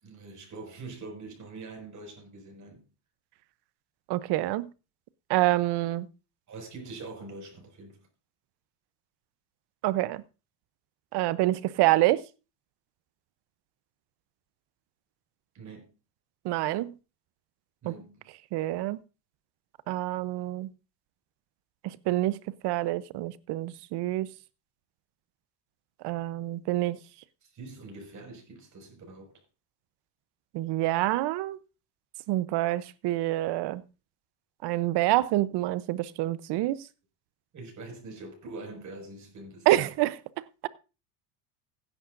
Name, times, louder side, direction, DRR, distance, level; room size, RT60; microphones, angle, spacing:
voice 1, 0.0-2.9 6.5-8.0 15.5-15.9 17.8-18.3 27.4-29.4 37.5-40.0, right 3 dB, 40° right, 5.7 m, -44 dB
voice 2, 4.1-4.7 5.3-6.1 9.8-10.2 11.1-12.2 16.4-16.9 17.9-18.0 18.5-19.0 19.9-20.7 22.1-22.4 22.6-24.3 26.0-27.0 30.5-31.6 32.3-33.8 34.6-36.8 39.7-40.1, right 16 dB, 60° right, 0.8 m, -26 dB
15.5 x 10.5 x 2.6 m
supercardioid pair, 105°, 45 cm